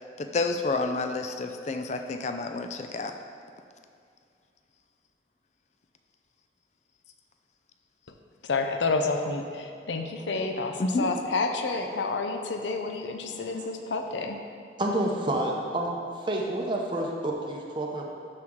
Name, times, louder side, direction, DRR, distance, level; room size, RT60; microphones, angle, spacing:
voice 1, 0.2-3.1 10.8-11.1, left 3 dB, 40° left, 6 dB, 0.4 m, -29 dB
voice 2, 8.4-14.4, left 3 dB, 85° left, 4 dB, 0.6 m, -29 dB
voice 3, 11.0-11.9 13.3-13.7 14.0-14.1 14.8-18.1, right 1 dB, 25° right, -1 dB, 0.7 m, -31 dB
12.0 x 4.5 x 3.7 m, 2.4 s
head